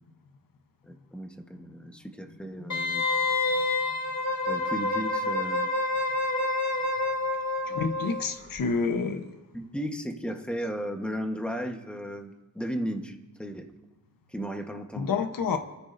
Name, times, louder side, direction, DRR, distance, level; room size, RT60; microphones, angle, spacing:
voice 1, 0.9-3.1 4.5-5.7 7.7-8.2 9.5-13.7 14.3-15.1, equal, 5° left, 4 dB, 1.2 m, -35 dB
Wind instrument woodwind instrument, 2.7-8.2 8.6-8.7, left 2 dB, 55° left, 2.2 m, -28 dB
voice 2, 7.7-9.2 15.0-15.6, left 5 dB, 85° left, 7 dB, 1.1 m, -28 dB
27.0 x 14.0 x 2.7 m, 1.1 s
wide cardioid pair, 135°, 33 cm